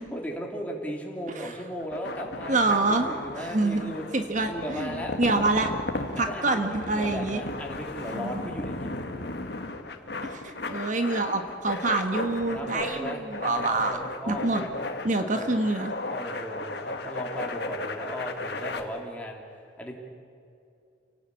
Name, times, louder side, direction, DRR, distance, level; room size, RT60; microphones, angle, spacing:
voice 1, 0.1-4.0 4.4-5.2 6.2-9.0 12.5-14.7 15.3-15.6 16.1-19.4 19.8-19.9, equal, 10° left, -1 dB, 3.3 m, -36 dB
sound 1, 1.8-18.8, left 2 dB, 60° left, 1.9 m, -35 dB
voice 2, 2.5-3.1 3.4-5.7 6.1-7.4 8.1-8.4 10.2-14.0 14.3-14.6 15.0-15.9, right 2 dB, 45° right, 6 dB, 1.4 m, -26 dB
28.5 x 18.0 x 8.5 m, 2.5 s
head